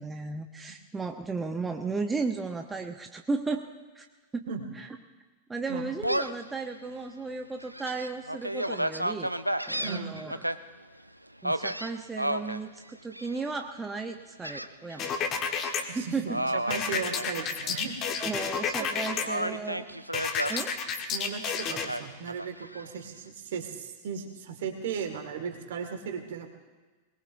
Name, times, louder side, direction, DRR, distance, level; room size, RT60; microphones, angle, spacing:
voice 1, 0.0-3.7 3.9-4.1 4.3-4.5 4.7-4.9 5.5-9.3 9.7-10.4 11.4-15.3 15.9-16.4 16.9-17.0 18.2-19.9 20.5-20.8, right 4 dB, 15° right, 4 dB, 0.9 m, -34 dB
Gull seagull, 6.0-6.5 7.0-7.1 7.6-10.6 11.4-12.6 13.1-13.6 14.4-15.1 15.5-15.7 16.3-17.8 18.2-18.9 19.3-20.6 21.9-22.9, right 1 dB, 90° right, 0.5 m, -32 dB
voice 2, 9.8-10.2 15.9-18.0 18.8-18.9 19.1-19.5 21.1-26.5, right 6 dB, 60° right, 5 dB, 2.1 m, -36 dB
sound 1, 15.0-15.8 16.7-19.2 20.1-21.9, left 6 dB, 35° left, 1.5 m, -30 dB
21.5 x 20.5 x 2.7 m, 1.3 s
figure-of-eight pair, 90°, 0 cm